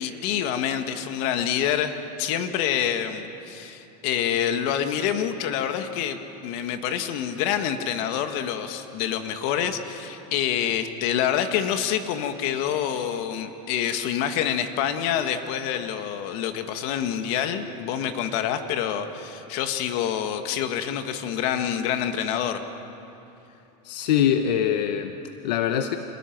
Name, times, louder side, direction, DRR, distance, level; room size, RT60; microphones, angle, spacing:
voice 1, 0.0-22.6, left 9 dB, 60° left, 7 dB, 1.8 m, -27 dB
voice 2, 23.8-26.0, left 9 dB, 90° left, 8 dB, 1.0 m, -23 dB
28.0 x 19.5 x 6.1 m, 2.9 s
supercardioid pair, 135°, 21 cm